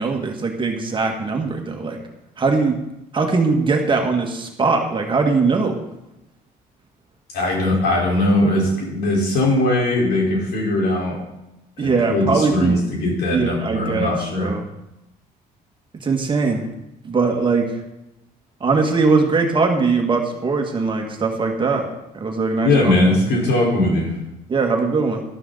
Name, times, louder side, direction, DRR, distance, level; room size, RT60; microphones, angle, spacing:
voice 1, 0.0-2.0 2.4-2.8 3.1-5.8 11.8-12.8 13.3-14.6 16.0-16.7 17.0-17.8 18.6-22.9 24.5-25.2, right 4 dB, 30° right, 3 dB, 2.0 m, -20 dB
voice 2, 7.3-11.2 11.8-14.5 22.6-24.1, left 1 dB, 75° left, -2 dB, 4.6 m, -20 dB
12.5 x 12.5 x 4.1 m, 0.90 s
cardioid pair, 110°, 17 cm